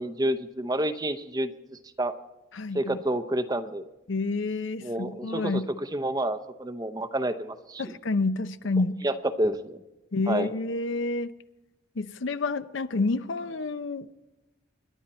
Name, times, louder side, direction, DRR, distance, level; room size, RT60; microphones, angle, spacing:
voice 1, 0.0-1.5 2.0-2.1 2.7-3.9 4.8-5.5 5.9-8.0 9.0-9.8 10.3-10.5, right 1 dB, 20° right, 0.7 m, -29 dB
voice 2, 2.5-3.0 4.1-5.7 7.8-9.0 10.1-11.3 12.0-14.1, left 3 dB, 65° left, 0.7 m, -29 dB
26.5 x 11.0 x 4.3 m
head